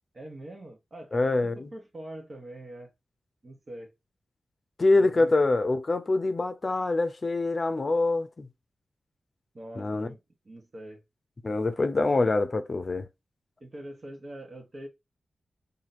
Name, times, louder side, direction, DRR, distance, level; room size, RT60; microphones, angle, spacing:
voice 1, 0.1-2.9 3.4-3.9 4.9-5.3 9.5-10.2 10.4-11.0 13.6-14.9, right 1 dB, 50° right, 1.2 m, -43 dB
voice 2, 1.1-1.7 4.8-8.5 9.8-10.1 11.4-13.1, left 2 dB, 45° left, 0.6 m, -25 dB
3.0 x 2.7 x 4.1 m
cardioid pair, 55°, 0 cm